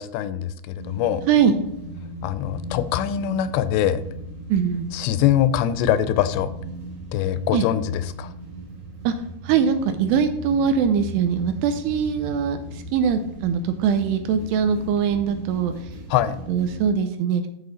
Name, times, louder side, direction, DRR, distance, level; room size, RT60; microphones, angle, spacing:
voice 1, 0.0-1.2 2.2-4.0 4.9-6.5 7.1-8.3 16.1-16.4, left 11 dB, 85° left, 13 dB, 2.7 m, -23 dB
sound 1, 0.7-16.9, right 1 dB, 50° right, 1.4 m, -38 dB
voice 2, 1.2-1.6 4.5-4.9 7.5-7.7 9.0-9.1 9.4-15.7 16.5-17.5, right 7 dB, 80° right, 8 dB, 2.5 m, -22 dB
12.0 x 5.2 x 3.9 m, 0.82 s
omnidirectional pair, 5.1 m